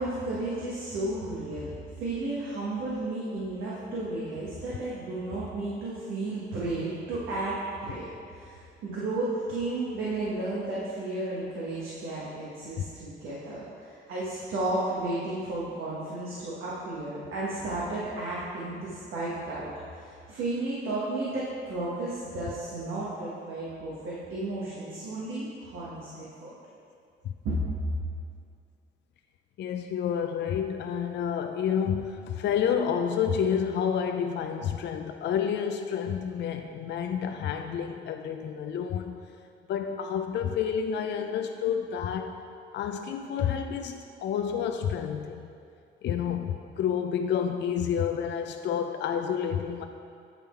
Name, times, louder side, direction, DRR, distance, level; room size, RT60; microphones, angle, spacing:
voice 1, 0.0-26.5 27.4-28.0, right 2 dB, 85° right, -7 dB, 1.2 m, -33 dB
voice 2, 29.6-39.2 39.7-42.4 42.7-45.5 46.0-49.8, left 8 dB, 60° left, 5 dB, 0.4 m, -29 dB
8.7 x 3.7 x 4.4 m, 2.4 s
cardioid pair, 90°, 20 cm